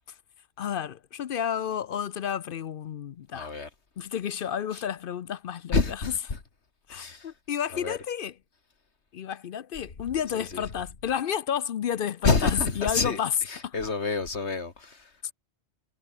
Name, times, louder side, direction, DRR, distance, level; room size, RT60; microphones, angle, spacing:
voice 1, 0.6-3.5 4.0-5.8 6.9-8.3 9.1-13.3 13.6-13.7, left 9 dB, 60° left, 0.7 m, -31 dB
voice 2, 3.3-3.7 4.7-4.8 5.7-6.4 6.9-7.3 7.7-8.0 10.3-10.6 12.2-13.2 13.4-15.1, left 4 dB, 75° left, 2.6 m, -28 dB
omnidirectional pair, 1.2 m